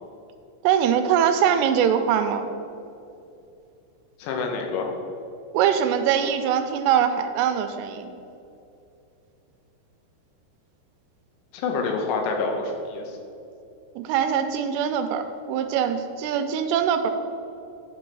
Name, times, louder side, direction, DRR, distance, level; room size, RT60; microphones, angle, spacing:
voice 1, 0.6-2.5 5.5-8.1 14.0-17.1, right 8 dB, 85° right, 7 dB, 2.6 m, -22 dB
voice 2, 4.2-4.9 11.5-13.2, left 4 dB, 80° left, 2 dB, 3.2 m, -27 dB
10.5 x 6.1 x 4.6 m, 2.7 s
omnidirectional pair, 5.2 m